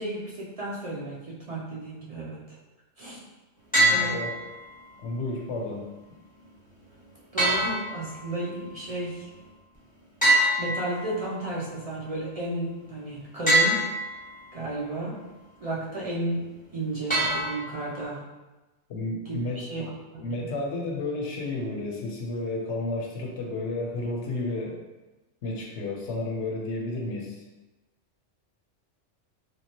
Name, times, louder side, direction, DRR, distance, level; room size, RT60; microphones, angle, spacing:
voice 1, 0.0-2.6 3.0-3.2 3.8-4.2 7.3-9.3 10.6-13.8 14.5-15.2 15.6-16.5 16.7-18.2 19.2-20.5, right 2 dB, 50° right, -5 dB, 0.4 m, -33 dB
voice 2, 3.7-4.4 5.0-5.9 18.9-19.6 20.2-24.8 25.4-27.4, left 2 dB, 75° left, -1 dB, 0.9 m, -32 dB
sound 1, 3.7-4.7 7.4-8.5 10.2-11.4 13.5-14.4 17.1-18.0, right 1 dB, 10° left, 0.9 m, -25 dB
3.2 x 2.8 x 2.9 m, 1.1 s
omnidirectional pair, 1.2 m